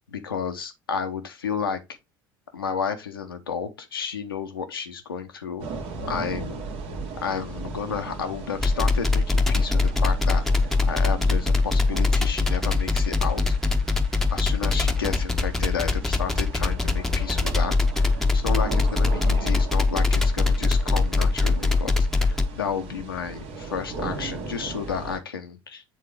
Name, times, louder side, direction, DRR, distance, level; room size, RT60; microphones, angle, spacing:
voice 1, 0.1-1.8 2.5-5.7 6.1-6.6 7.2-10.4 10.9-13.6 14.3-25.8, left 6 dB, 85° left, 0.8 m, -32 dB
sound 1, 5.6-25.2, right 3 dB, 55° right, 1.2 m, -38 dB
sound 2, 8.6-22.5, left 3 dB, 5° left, 0.8 m, -22 dB
7.9 x 3.7 x 3.3 m
figure-of-eight pair, 65°, 12 cm